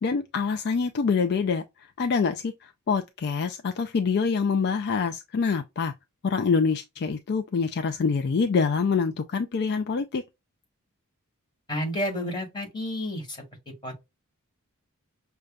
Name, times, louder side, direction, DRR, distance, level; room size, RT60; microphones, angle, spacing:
voice 1, 0.0-1.6 2.0-5.9 6.2-10.2, left 5 dB, 50° left, 0.4 m, -25 dB
voice 2, 11.7-13.4 13.8-14.1, left 1 dB, 20° left, 2.1 m, -31 dB
6.5 x 2.3 x 2.3 m
head